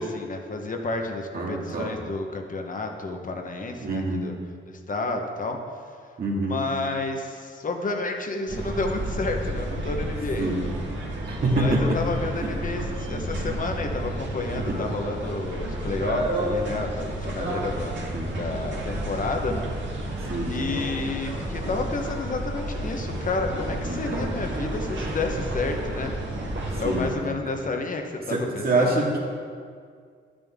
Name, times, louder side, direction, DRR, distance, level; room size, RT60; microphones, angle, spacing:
voice 1, 0.0-4.3 4.9-5.6 6.5-10.5 11.5-17.9 18.4-19.6 20.5-29.1, left 3 dB, 40° left, 3 dB, 1.1 m, -30 dB
voice 2, 1.3-1.9 3.8-4.2 6.2-6.6 10.4-10.6 11.3-12.0 14.5-14.8 18.1-18.3 20.3-20.5 23.8-24.2 26.8-27.1 28.3-29.2, right 2 dB, 50° right, -2 dB, 2.0 m, -25 dB
sound 1, 8.5-27.1, right 1 dB, 70° right, 1.9 m, -31 dB
12.0 x 9.0 x 3.6 m, 2.1 s
wide cardioid pair, 130°, 20 cm